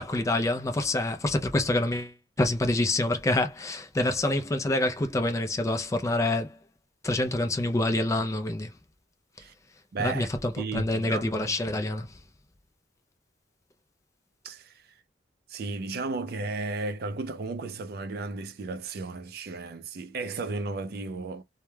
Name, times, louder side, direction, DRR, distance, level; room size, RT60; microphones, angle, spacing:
voice 1, 0.0-6.6 7.0-8.7 10.0-12.1, left 1 dB, 15° left, 0.3 m, -27 dB
voice 2, 9.9-10.3 10.6-11.4 14.4-14.7 15.5-21.4, right 3 dB, 55° right, 0.4 m, -34 dB
2.2 x 2.1 x 3.1 m
head